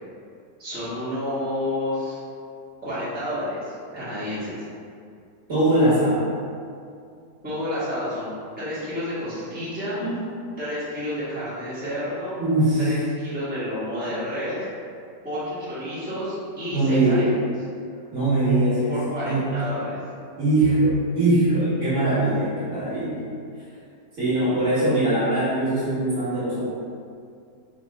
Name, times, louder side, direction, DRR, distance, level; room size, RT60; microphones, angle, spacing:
voice 1, 0.6-2.2 2.8-4.5 7.4-8.3 8.6-10.0 10.6-12.3 12.9-14.6 15.2-17.3 18.9-20.0, left 1 dB, 5° right, -12 dB, 1.0 m, -30 dB
voice 2, 5.5-6.3 10.0-10.2 12.4-12.9 16.7-17.2 18.1-18.9 19.2-19.4 20.4-23.3 24.2-26.6, right 1 dB, 45° right, -11 dB, 1.6 m, -21 dB
3.4 x 2.9 x 4.1 m, 2.3 s
omnidirectional pair, 1.8 m